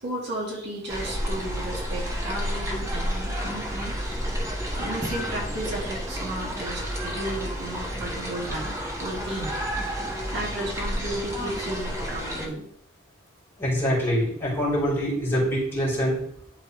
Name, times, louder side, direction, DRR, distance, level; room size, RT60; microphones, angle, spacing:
voice 1, 0.0-4.2 4.5-9.5 9.8-12.7, right 1 dB, 60° right, -3 dB, 2.1 m, -34 dB
sound 1, 0.9-12.5, equal, 15° right, 1.3 m, -31 dB
voice 2, 13.6-16.2, equal, 15° left, -7 dB, 3.3 m, -24 dB
11.5 x 4.1 x 3.1 m, 0.66 s
head